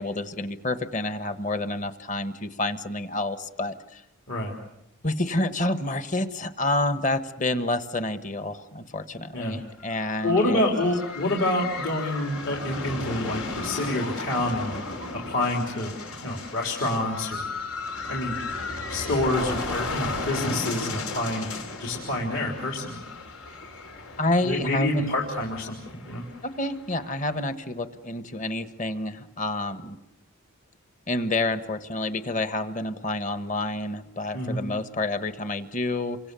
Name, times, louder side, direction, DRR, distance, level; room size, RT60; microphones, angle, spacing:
voice 1, 0.0-4.0 5.0-10.6 24.2-25.2 26.4-30.0 31.1-36.2, left 2 dB, 35° left, 10 dB, 1.3 m, -28 dB
sound 1, 9.8-27.4, left 3 dB, 90° left, 4.2 m, -35 dB
voice 2, 10.2-14.8 15.1-15.9 16.2-17.4 18.1-18.3 18.9-21.5 21.8-23.0 24.4-26.2 34.3-34.7, left 1 dB, 65° left, 0 dB, 3.7 m, -27 dB
28.5 x 25.0 x 7.0 m, 0.81 s
head